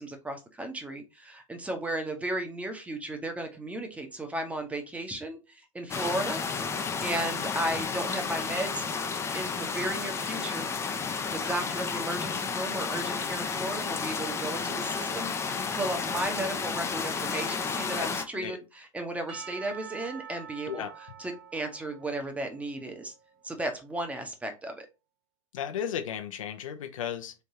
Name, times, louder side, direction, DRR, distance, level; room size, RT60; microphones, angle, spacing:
voice 1, 0.0-6.4 6.8-8.8 9.3-10.7 11.3-20.9 21.2-23.1 23.4-24.9, right 1 dB, 10° right, 0.9 m, -35 dB
sound 1, 5.9-18.2, left 5 dB, 15° left, 0.5 m, -32 dB
voice 2, 18.0-18.6 20.7-20.9 25.5-27.3, left 8 dB, 75° left, 0.6 m, -35 dB
Percussion / Church bell, 19.3-23.6, right 8 dB, 35° right, 1.0 m, -47 dB
3.4 x 3.3 x 2.8 m
hypercardioid pair, 105°, 17 cm